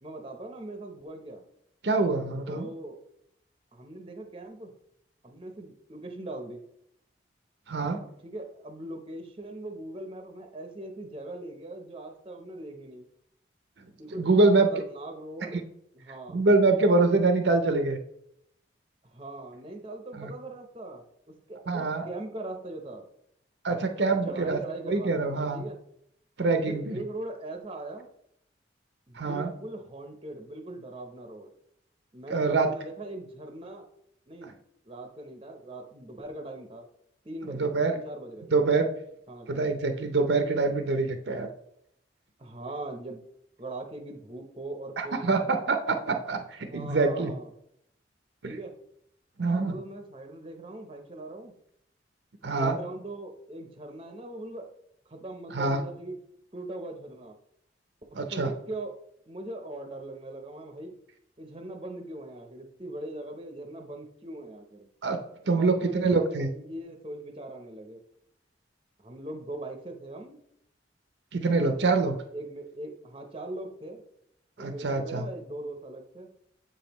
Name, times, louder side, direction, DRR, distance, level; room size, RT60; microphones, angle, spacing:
voice 1, 0.0-1.4 2.5-3.0 3.7-4.7 5.2-6.6 8.2-13.0 14.0-15.6 15.9-16.4 19.0-23.0 24.2-25.8 26.7-28.1 29.1-31.5 32.1-33.8 34.3-34.5 34.9-36.9 37.2-38.6 39.3-39.6 42.4-43.2 43.6-45.6 46.7-47.5 48.4-48.7 49.5-51.5 52.4-54.7 55.1-56.2 56.5-57.4 58.1-59.0 59.3-60.9 61.4-64.9 65.4-68.0 69.0-70.4 71.5-71.8 72.1-74.0 74.6-76.3, right 2 dB, 30° right, 4 dB, 0.7 m, -40 dB
voice 2, 1.8-2.7 7.7-8.0 14.1-14.7 16.3-18.0 20.1-20.3 21.7-22.1 23.6-24.6 24.9-25.6 26.4-27.0 29.2-29.5 32.3-32.7 37.5-38.0 38.5-38.9 39.5-41.5 45.0-47.3 48.4-48.5 49.4-49.8 52.4-52.8 55.5-55.8 58.2-58.5 65.0-66.5 71.3-72.2 74.6-75.3, right 3 dB, 60° right, 6 dB, 0.6 m, -25 dB
7.3 x 5.3 x 3.0 m, 0.74 s
head